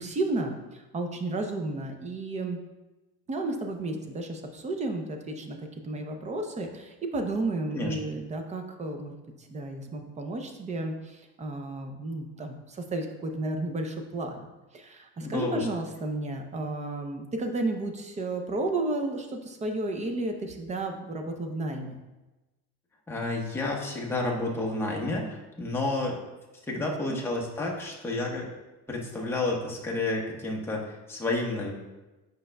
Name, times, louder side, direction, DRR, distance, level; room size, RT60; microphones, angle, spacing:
voice 1, 0.0-2.6 3.3-14.5 14.7-22.0 26.8-27.2, right 2 dB, 20° right, 5 dB, 0.5 m, -33 dB
voice 2, 15.2-15.7 23.1-26.2 26.7-28.5 28.9-31.7, left 2 dB, 5° left, -2 dB, 0.9 m, -30 dB
8.5 x 5.3 x 2.2 m, 1.1 s
cardioid pair, 145°, 37 cm